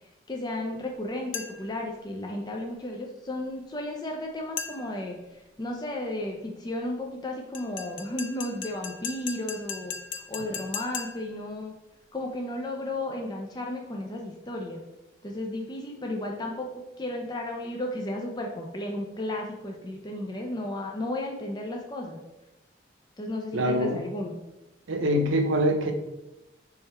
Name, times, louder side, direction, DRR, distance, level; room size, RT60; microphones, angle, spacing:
voice 1, 0.3-11.7 12.1-14.8 15.2-22.2 23.2-24.4, left 1 dB, 20° left, 1 dB, 0.4 m, -34 dB
sound 1, 1.3-1.8 4.6-5.1 7.5-11.4, left 7 dB, 80° left, 0.4 m, -38 dB
voice 2, 23.5-24.0 24.9-25.9, equal, 85° right, 5 dB, 0.6 m, -24 dB
3.6 x 3.4 x 4.2 m, 0.97 s
head